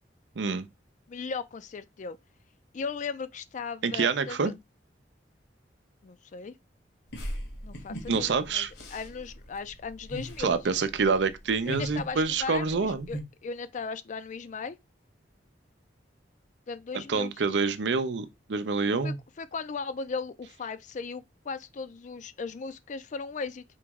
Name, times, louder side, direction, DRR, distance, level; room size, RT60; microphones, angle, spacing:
voice 1, 0.4-0.7 3.8-4.5 8.1-8.7 10.4-13.1 16.9-19.2, right 4 dB, 80° right, 0.6 m, -27 dB
voice 2, 1.1-2.2 2.7-4.5 6.0-6.5 7.6-10.6 11.7-14.8 16.7-17.3 19.0-23.6, left 5 dB, 45° left, 0.4 m, -37 dB
sound 1, 7.1-13.2, equal, 65° left, 1.3 m, -40 dB
4.5 x 3.0 x 3.5 m
head